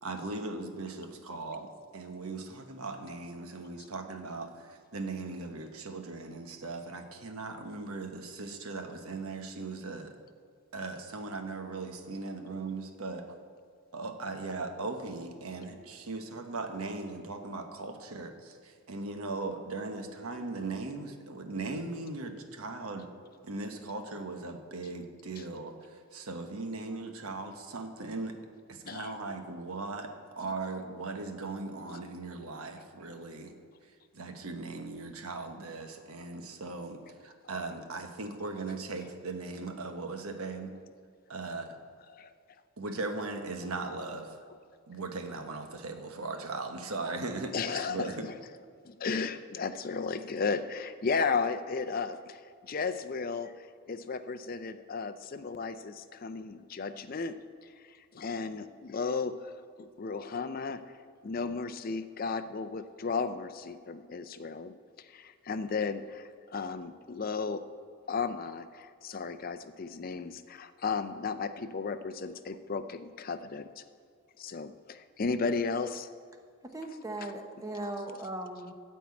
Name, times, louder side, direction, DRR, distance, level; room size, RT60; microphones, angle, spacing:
voice 1, 0.0-10.2 10.7-13.4 13.9-23.1 23.4-28.4 28.7-33.5 33.8-40.7 41.3-41.8 42.8-44.4 44.9-48.2, right 3 dB, 85° right, 5 dB, 1.1 m, -39 dB
voice 2, 28.8-29.2 42.1-42.3 47.5-48.4 48.8-59.5 59.8-60.8 61.2-67.6 68.1-73.8 74.4-76.1, left 4 dB, 40° left, 11 dB, 0.4 m, -34 dB
voice 3, 76.6-78.7, right 1 dB, 15° right, 4 dB, 0.8 m, -38 dB
13.5 x 4.5 x 8.5 m, 2.1 s
head